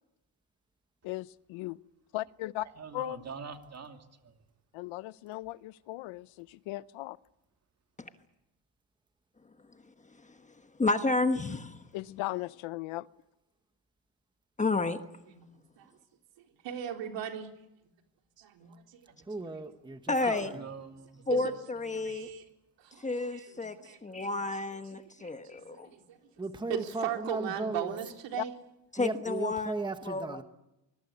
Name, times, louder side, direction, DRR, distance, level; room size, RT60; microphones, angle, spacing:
voice 1, 1.0-1.8 2.1-2.7 2.9-3.3 4.7-7.2 11.9-13.1 28.4-28.5, left 18 dB, 85° left, 18 dB, 0.9 m, -37 dB
voice 2, 2.8-4.0 20.2-21.1 22.0-22.1, right 6 dB, 35° right, 5 dB, 2.6 m, -43 dB
voice 3, 10.8-11.8 14.6-15.0 20.1-20.5 21.3-22.3 23.0-23.8 24.0-25.9 28.9-30.4, left 3 dB, 15° left, 8 dB, 1.2 m, -31 dB
voice 4, 16.6-17.5 18.4-18.8 21.3-21.5 21.9-22.4 22.8-24.2 24.5-24.6 25.2-26.2 26.7-28.5, right 9 dB, 70° right, 4 dB, 4.0 m, -38 dB
voice 5, 19.3-20.7 26.4-28.0 29.0-30.4, right 3 dB, 10° right, 8 dB, 1.3 m, -36 dB
25.0 x 22.0 x 8.5 m, 0.92 s
cardioid pair, 145°, 46 cm